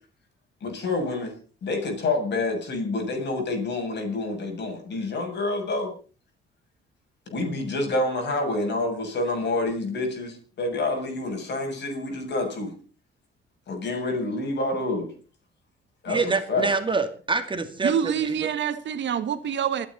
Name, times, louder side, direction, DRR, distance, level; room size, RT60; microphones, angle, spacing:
voice 1, 0.6-5.9 7.3-12.7 13.7-15.1 16.0-16.7, left 2 dB, 60° left, 7.4 m, -28 dB
voice 2, 16.1-18.3, right 4 dB, 25° right, 2.2 m, -26 dB
voice 3, 17.8-19.9, right 8 dB, 65° right, 1.6 m, -26 dB
28.5 x 9.5 x 4.2 m
cardioid pair, 90°, 20 cm